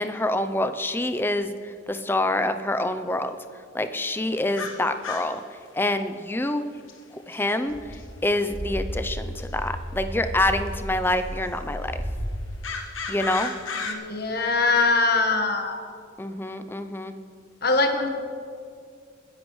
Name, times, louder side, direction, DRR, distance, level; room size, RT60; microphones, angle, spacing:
voice 1, 0.0-3.3 3.7-5.4 5.7-6.6 7.1-12.0 13.1-13.5 16.2-17.2, left 1 dB, 10° left, 9 dB, 0.5 m, -26 dB
sound 1, 4.5-5.4 6.9-7.0 7.3-7.4 7.9-8.0 9.4-9.5 10.7-10.8 12.6-13.9, left 4 dB, 85° left, 1.2 m, -33 dB
sound 2, 7.7-12.3, equal, 15° right, 1.3 m, -33 dB
voice 2, 13.8-15.8 17.6-18.1, left 3 dB, 50° left, 4 dB, 1.4 m, -22 dB
22.0 x 10.5 x 3.2 m, 2.3 s
head